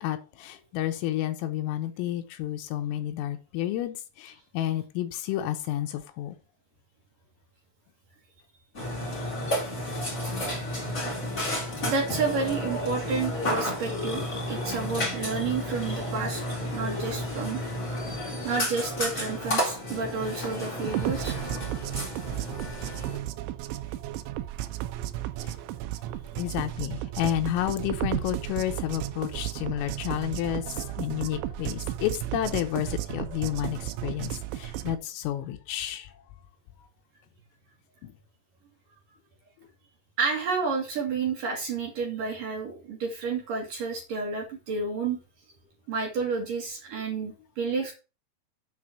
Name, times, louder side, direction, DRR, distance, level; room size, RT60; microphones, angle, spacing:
voice 1, 0.0-6.4 25.4-25.6 26.4-36.1 38.0-38.1, left 12 dB, 80° left, 3.6 m, -31 dB
Burping eructation, 8.7-23.2, left 1 dB, 20° left, 3.4 m, -32 dB
voice 2, 11.8-16.4 16.7-17.6 18.4-21.4 40.2-45.2 45.9-47.9, right 4 dB, 55° right, 2.9 m, -30 dB
sound 1, 20.8-35.0, right 14 dB, 80° right, 2.9 m, -34 dB
8.3 x 5.2 x 6.0 m
omnidirectional pair, 5.9 m